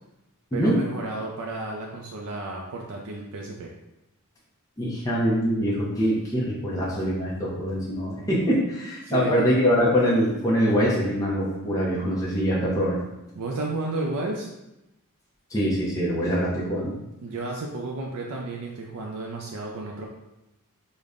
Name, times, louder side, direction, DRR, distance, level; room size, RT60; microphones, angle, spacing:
voice 1, 0.5-3.7 9.0-9.4 13.4-14.5 17.2-20.1, right 2 dB, 75° right, -1 dB, 0.4 m, -32 dB
voice 2, 4.8-13.0 15.5-16.9, equal, 15° left, -6 dB, 0.6 m, -24 dB
5.0 x 2.1 x 2.4 m, 0.93 s
head